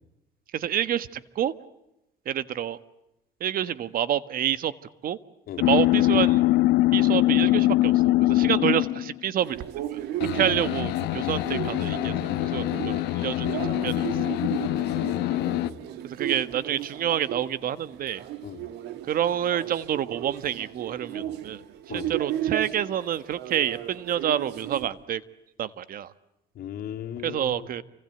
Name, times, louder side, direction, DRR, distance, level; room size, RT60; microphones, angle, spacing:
voice 1, 0.5-1.5 2.2-2.8 3.4-4.7 5.0-5.2 5.6-6.4 6.9-9.6 9.9-10.0 10.3-14.3 16.0-18.2 19.1-21.6 21.9-25.2 25.6-26.1 27.2-27.8, right 10 dB, 60° right, 14 dB, 1.4 m, -28 dB
sound 1, 5.6-9.1 10.2-15.7, left 16 dB, 90° left, 1.0 m, -23 dB
sound 2, 9.4-24.9, right 12 dB, 85° right, 2.4 m, -35 dB
voice 2, 14.9-15.8 18.4-18.6 21.1-21.3 21.9-22.1 26.5-27.7, left 10 dB, 65° left, 4 dB, 2.9 m, -37 dB
29.0 x 25.5 x 8.0 m, 0.88 s
cardioid pair, 110°, 17 cm